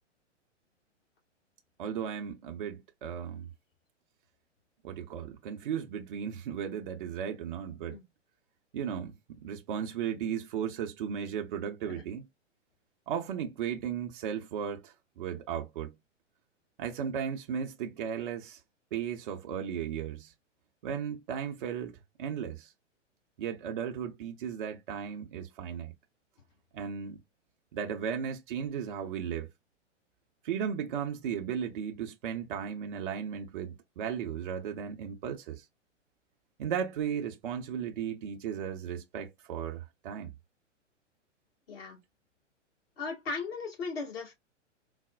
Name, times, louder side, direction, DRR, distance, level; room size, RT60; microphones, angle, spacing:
voice 1, 1.8-3.5 4.8-8.0 8.7-9.1 9.4-12.3 13.1-16.0 16.8-18.6 18.9-20.3 20.8-22.7 23.4-25.9 26.7-27.2 27.7-29.5 30.4-35.6 36.6-40.3, right 8 dB, 45° right, 0.5 m, -35 dB
voice 2, 41.7-42.0 43.0-44.3, left 4 dB, 50° left, 1.7 m, -37 dB
3.9 x 2.0 x 2.2 m
figure-of-eight pair, 110°, 37 cm